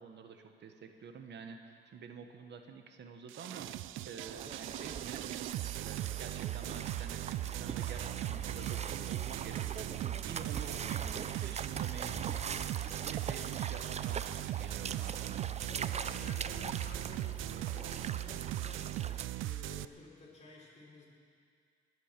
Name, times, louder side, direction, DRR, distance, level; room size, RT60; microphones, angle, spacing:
voice 1, 0.0-12.6 13.0-15.5, right 6 dB, 60° right, 6 dB, 1.3 m, -49 dB
sound 1, 3.3-19.9, right 15 dB, 80° right, 0.4 m, -39 dB
sound 2, 3.9-18.0, equal, 20° right, 2.7 m, -56 dB
sound 3, 4.3-19.2, right 6 dB, 35° right, 0.5 m, -42 dB
voice 2, 15.7-21.0, left 2 dB, 35° left, -3 dB, 4.8 m, -52 dB
20.0 x 8.9 x 6.8 m, 2.2 s
cardioid pair, 90°, 20 cm